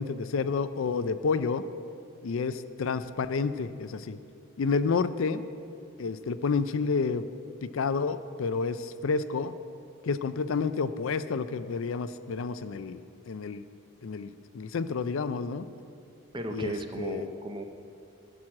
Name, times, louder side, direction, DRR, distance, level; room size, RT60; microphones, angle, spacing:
voice 1, 0.0-1.6 2.2-4.2 4.6-5.4 6.0-7.2 7.6-9.5 10.0-13.0 13.3-13.6 14.0-15.7 16.5-17.3, left 4 dB, 65° left, 12 dB, 0.4 m, -30 dB
voice 2, 16.3-17.6, right 1 dB, 20° right, 6 dB, 0.6 m, -35 dB
14.0 x 6.2 x 7.4 m, 2.5 s
head